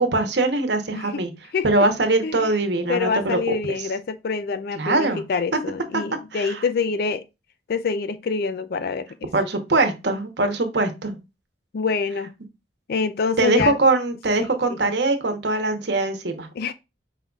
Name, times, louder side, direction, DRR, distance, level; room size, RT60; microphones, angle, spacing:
voice 1, 0.0-1.3 1.6-3.4 4.7-5.2 6.3-6.6 9.3-11.2 13.4-16.5, right 2 dB, 65° right, 1.0 m, -22 dB
voice 2, 0.9-1.2 1.5-1.7 2.2-2.6 2.9-7.2 7.7-9.3 11.7-12.3 12.9-13.8 14.7-14.8 16.6-16.7, left 5 dB, 55° left, 0.3 m, -26 dB
5.2 x 3.9 x 2.3 m
head